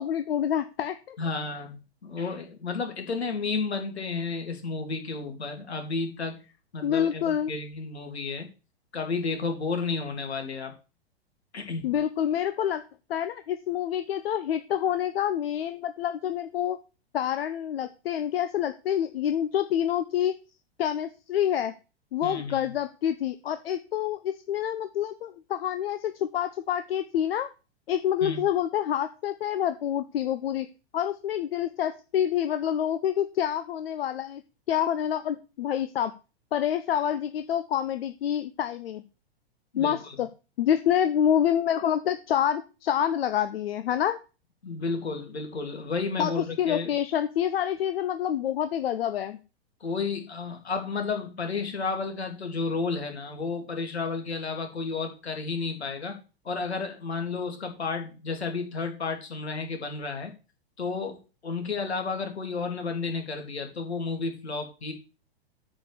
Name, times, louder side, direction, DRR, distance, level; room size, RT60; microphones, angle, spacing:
voice 1, 0.0-1.2 6.8-7.5 11.8-12.8 13.1-16.8 17.1-20.3 20.8-21.7 22.1-27.5 27.9-30.7 30.9-34.4 34.7-36.1 36.5-39.0 39.8-40.3 40.6-44.2 46.2-49.4, left 10 dB, 65° left, 10 dB, 0.9 m, -27 dB
voice 2, 1.2-6.4 6.7-8.5 8.9-10.7 11.5-11.8 22.2-22.7 28.2-28.4 39.7-40.1 44.6-46.9 49.8-56.2 56.4-60.3 60.8-64.9, left 4 dB, 80° left, 4 dB, 2.9 m, -32 dB
9.0 x 4.6 x 6.8 m, 0.32 s
hypercardioid pair, 110°, 32 cm